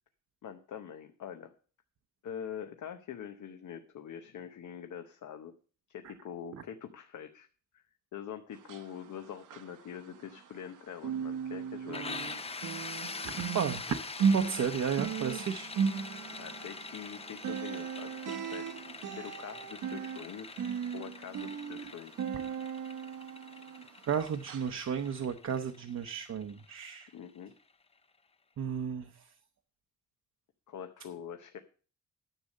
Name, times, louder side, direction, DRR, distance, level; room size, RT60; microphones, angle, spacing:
voice 1, 0.4-1.5 2.2-5.5 5.9-7.5 8.1-12.3 16.4-18.8 19.1-20.7 20.9-22.1 27.1-27.5 30.7-31.6, left 8 dB, 70° left, 7 dB, 0.9 m, -44 dB
sound 1, 8.5-10.7 11.0-24.1 24.5-24.7 25.2-25.3, right 6 dB, 80° right, 1.0 m, -36 dB
sound 2, 11.9-27.5, left 4 dB, 20° left, 0.6 m, -44 dB
voice 2, 13.2-14.0 14.3-15.7 24.1-27.1 28.6-29.1, right 7 dB, 60° right, 5 dB, 0.8 m, -33 dB
10.5 x 6.7 x 6.4 m, 0.39 s
wide cardioid pair, 155°, 31 cm